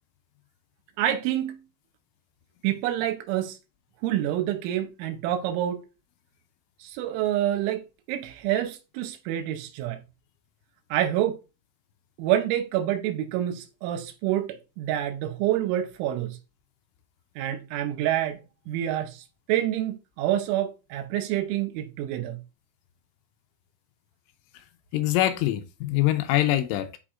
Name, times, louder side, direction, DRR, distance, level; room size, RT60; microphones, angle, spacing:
voice 1, 1.0-1.6 2.6-3.6 4.0-5.8 6.8-10.0 10.9-11.4 12.2-16.4 17.4-18.4 18.7-22.4, right 12 dB, 90° right, 3.1 m, -27 dB
voice 2, 24.9-27.0, left 14 dB, 85° left, 3.0 m, -24 dB
11.0 x 4.3 x 2.4 m
omnidirectional pair, 5.6 m